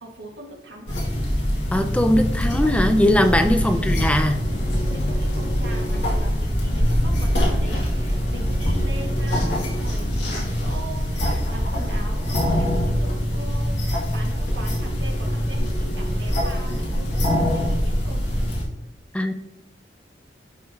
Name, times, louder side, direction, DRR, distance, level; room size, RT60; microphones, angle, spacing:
voice 1, 0.0-1.0 3.3-3.5 4.9-18.2, right 1 dB, 70° right, 0 dB, 1.6 m, -41 dB
sound 1, 0.9-18.6, equal, 70° left, 1.9 m, -23 dB
voice 2, 1.7-4.5 19.1-19.3, left 1 dB, 5° left, 7 dB, 0.4 m, -20 dB
sound 2, 4.4-6.3 7.7-10.0 11.4-13.4 14.5-16.9, right 1 dB, 50° left, 1.1 m, -39 dB
11.0 x 3.8 x 2.8 m, 0.89 s
head